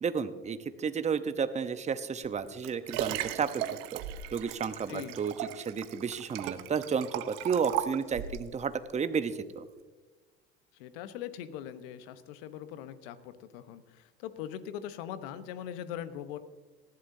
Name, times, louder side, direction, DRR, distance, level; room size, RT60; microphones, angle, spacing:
voice 1, 0.0-3.6 3.9-4.0 4.3-9.6, right 6 dB, 25° right, 11 dB, 0.9 m, -32 dB
Liquid, 2.2-8.5 9.1-9.2, right 12 dB, 60° right, 0.9 m, -37 dB
voice 2, 10.7-16.4, left 10 dB, 70° left, 12 dB, 1.0 m, -41 dB
19.5 x 14.5 x 2.7 m, 1.2 s
hypercardioid pair, 75°, 30 cm